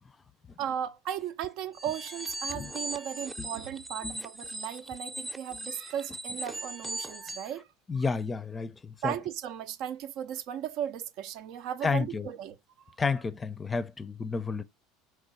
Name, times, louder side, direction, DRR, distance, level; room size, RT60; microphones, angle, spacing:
voice 1, 0.6-7.7 9.0-12.6 12.8-13.0, right 10 dB, 65° right, 0.5 m, -36 dB
sound 1, 1.7-7.5, right 2 dB, 15° right, 0.7 m, -39 dB
voice 2, 7.9-9.1 11.8-12.3 13.0-14.6, left 4 dB, 25° left, 0.5 m, -31 dB
4.7 x 3.7 x 2.6 m
hypercardioid pair, 80°, 0 cm